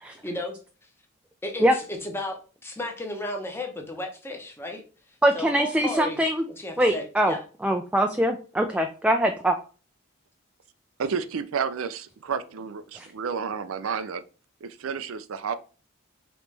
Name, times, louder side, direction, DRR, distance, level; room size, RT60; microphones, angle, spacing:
voice 1, 0.2-0.6 1.4-4.8 5.3-6.2 6.6-7.4, left 1 dB, 10° left, 0.8 m, -34 dB
voice 2, 5.2-6.4 6.8-7.3 7.6-9.5 12.9-13.1, right 1 dB, 5° right, 0.3 m, -23 dB
voice 3, 11.0-14.2 14.6-15.5, right 6 dB, 75° right, 0.4 m, -31 dB
5.1 x 3.1 x 3.3 m
head